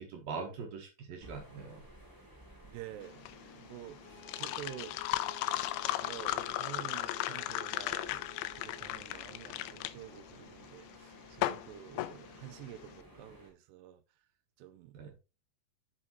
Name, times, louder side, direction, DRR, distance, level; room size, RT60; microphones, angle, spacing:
voice 1, 0.0-1.8 14.9-15.1, right 5 dB, 65° right, 2.8 m, -42 dB
sound 1, 1.2-13.5, right 1 dB, 5° left, 2.0 m, -56 dB
voice 2, 2.6-5.0 5.9-8.2 8.5-14.0 14.6-15.2, right 12 dB, 80° right, 2.7 m, -49 dB
sound 2, 3.0-12.9, left 15 dB, 90° left, 2.9 m, -36 dB
sound 3, 4.0-9.0, left 1 dB, 65° left, 3.9 m, -53 dB
8.4 x 7.4 x 3.1 m
omnidirectional pair, 5.1 m